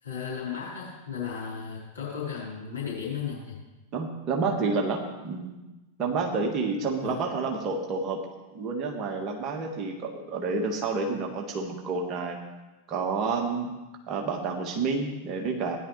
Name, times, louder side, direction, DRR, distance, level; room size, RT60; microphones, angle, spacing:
voice 1, 0.0-3.6 7.0-7.2, left 7 dB, 80° left, -7 dB, 4.4 m, -35 dB
voice 2, 3.9-5.5 6.0-8.2 8.5-12.4 12.9-13.7 14.1-15.8, right 4 dB, 35° right, 2 dB, 1.6 m, -29 dB
16.5 x 10.5 x 3.3 m, 1.1 s
figure-of-eight pair, 90°, 0 cm